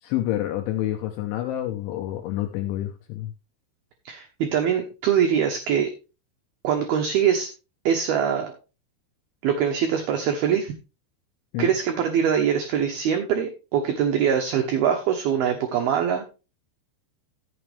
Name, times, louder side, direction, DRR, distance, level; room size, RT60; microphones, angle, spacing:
voice 1, 0.0-3.3 11.5-11.8, left 13 dB, 75° left, 6 dB, 3.1 m, -28 dB
voice 2, 4.1-5.9 6.6-7.5 7.9-8.6 9.4-10.7 11.6-16.2, right 8 dB, 70° right, 3 dB, 2.4 m, -23 dB
14.5 x 7.2 x 3.4 m, 0.31 s
omnidirectional pair, 5.8 m